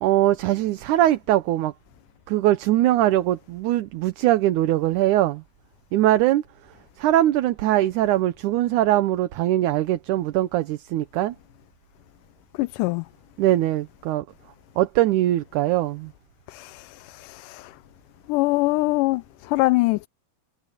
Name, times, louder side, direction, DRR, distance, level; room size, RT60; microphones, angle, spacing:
voice 1, 0.0-1.7 2.3-5.4 5.9-6.4 7.0-11.4 13.4-14.2 14.8-16.1, right 14 dB, 75° right, 2.3 m, -21 dB
voice 2, 12.6-13.0 16.5-17.7 18.3-20.1, left 20 dB, 85° left, 2.2 m, -24 dB
omnidirectional pair, 3.7 m